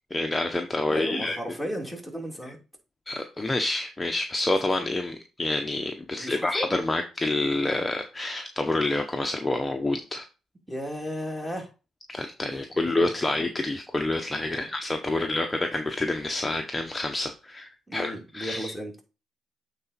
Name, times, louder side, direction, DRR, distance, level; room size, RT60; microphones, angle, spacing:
voice 1, 0.1-1.4 3.1-10.2 12.1-18.7, left 2 dB, 15° left, 4 dB, 0.9 m, -28 dB
voice 2, 0.9-2.6 6.1-6.7 10.7-11.7 12.8-13.3 14.5-14.7 15.1-15.4 17.9-19.0, equal, 5° right, 1 dB, 2.7 m, -35 dB
8.4 x 4.1 x 4.2 m, 0.31 s
cardioid pair, 90°, 0 cm